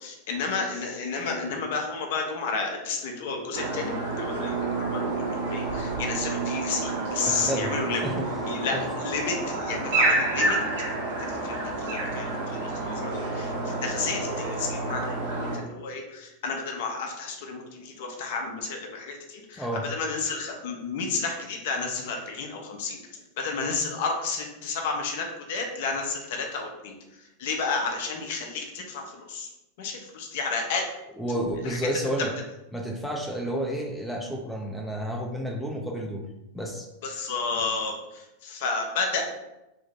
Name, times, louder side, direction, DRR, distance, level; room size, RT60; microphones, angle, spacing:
voice 1, 0.0-8.0 8.5-10.6 11.2-11.6 11.8-23.0 23.4-26.9 27.4-29.5 29.8-30.9 31.6-31.8 37.0-39.2, left 4 dB, 55° left, 2 dB, 0.6 m, -31 dB
sound 1, 3.5-15.6, right 2 dB, 60° right, 1.1 m, -29 dB
voice 2, 7.2-7.7 8.0-8.8 19.5-19.9 31.1-32.3 32.7-36.2 36.5-36.9, equal, ahead, 0 dB, 0.5 m, -31 dB
2.7 x 2.7 x 3.5 m, 0.92 s
figure-of-eight pair, 90°, 0 cm